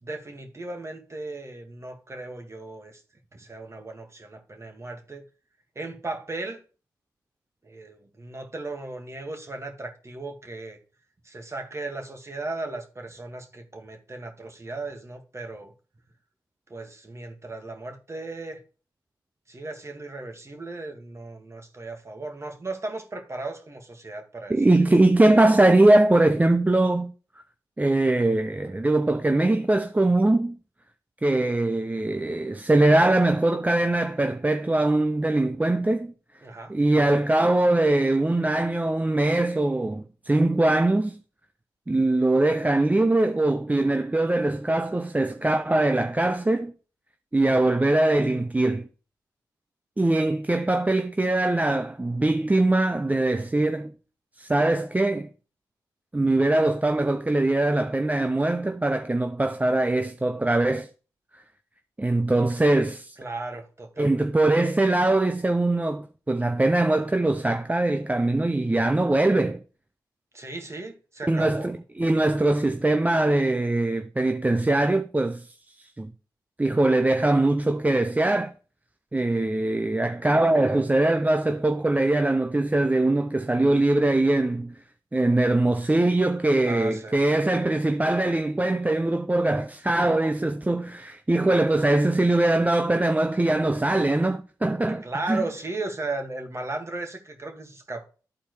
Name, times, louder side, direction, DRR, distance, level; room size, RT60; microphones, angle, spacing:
voice 1, 0.0-3.0 3.3-5.2 5.7-6.6 7.6-10.8 11.2-15.7 16.7-18.6 19.5-24.5 36.4-36.7 63.2-64.3 70.3-71.8 86.6-87.2 94.9-98.1, right 2 dB, 35° right, 1.7 m, -36 dB
voice 2, 24.5-27.1 27.8-30.6 31.2-36.1 36.7-41.2 41.9-46.7 47.3-48.9 50.0-53.9 54.4-55.3 56.1-60.9 62.0-63.2 64.0-69.6 71.3-75.5 76.0-76.1 76.6-78.5 79.1-84.8 85.1-95.4, right 2 dB, 20° right, 0.6 m, -22 dB
12.0 x 4.2 x 3.1 m
supercardioid pair, 40°, 8 cm